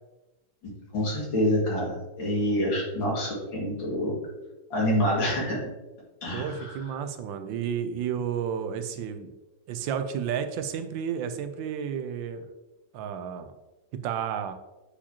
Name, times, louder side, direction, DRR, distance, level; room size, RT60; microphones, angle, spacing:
voice 1, 0.9-4.2 4.7-5.6 6.2-6.8, equal, 90° left, -4 dB, 2.8 m, -27 dB
voice 2, 6.3-9.3 9.7-12.5 12.9-13.5 14.0-14.5, right 8 dB, 85° right, 9 dB, 1.3 m, -31 dB
8.5 x 4.8 x 2.9 m, 1.1 s
omnidirectional pair, 2.0 m